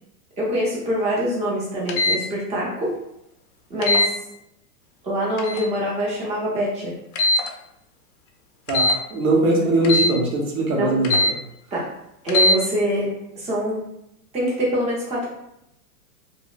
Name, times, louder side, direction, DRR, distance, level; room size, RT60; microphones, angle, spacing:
voice 1, 0.4-2.9 3.7-4.1 5.0-7.0 10.7-10.9 11.7-11.9 12.2-13.1 13.4-13.8 14.3-15.3, equal, 15° right, -6 dB, 0.7 m, -24 dB
sound 1, 1.9-2.2 3.8-4.1 5.4-5.7 7.2-7.5 8.7-9.0 9.8-10.1 11.0-11.3 12.3-12.6, left 2 dB, 70° left, 0.6 m, -20 dB
voice 2, 8.7-11.3, right 2 dB, 60° right, 0 dB, 0.9 m, -21 dB
2.9 x 2.1 x 2.3 m, 0.82 s
hypercardioid pair, 135°, 46 cm